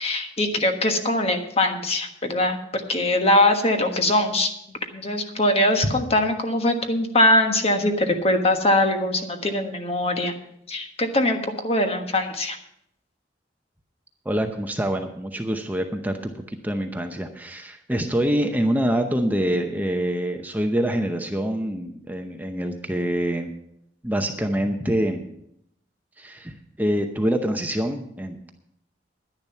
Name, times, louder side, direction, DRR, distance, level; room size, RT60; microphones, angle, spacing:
voice 1, 0.0-4.5 4.9-10.3 10.7-12.6, left 1 dB, 35° left, 5 dB, 1.3 m, -22 dB
voice 2, 14.2-23.5 24.0-25.3 26.2-28.6, right 1 dB, 10° right, 5 dB, 0.7 m, -25 dB
10.5 x 10.5 x 5.6 m, 0.74 s
head